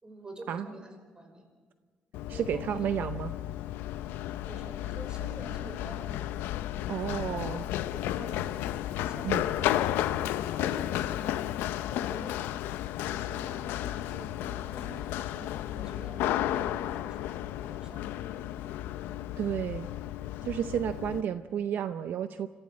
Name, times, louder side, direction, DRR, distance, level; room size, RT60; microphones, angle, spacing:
voice 1, 0.0-1.4 2.3-2.9 4.4-6.3 7.1-8.5 9.0-11.3 11.8-12.4 13.1-17.2 17.6-18.1, right 1 dB, 25° right, 6 dB, 5.0 m, -47 dB
Run, 2.1-21.2, left 13 dB, 90° left, 0.6 m, -33 dB
voice 2, 2.3-3.3 6.9-7.6 9.2-9.4 19.4-19.9 20.4-22.5, right 9 dB, 65° right, 10 dB, 0.7 m, -31 dB
26.5 x 15.0 x 7.4 m, 1.5 s
cardioid pair, 100°, 4 cm